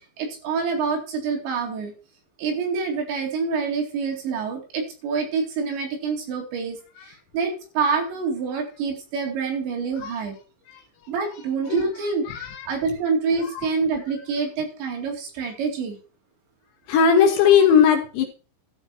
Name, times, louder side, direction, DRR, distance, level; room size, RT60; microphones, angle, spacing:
voice 1, 0.2-1.9 2.4-10.4 11.1-16.0, right 5 dB, 65° right, 3 dB, 4.5 m, -27 dB
voice 2, 12.3-12.6 16.9-18.3, left 7 dB, 70° left, 4 dB, 3.0 m, -17 dB
13.0 x 5.5 x 5.8 m, 0.35 s
omnidirectional pair, 5.7 m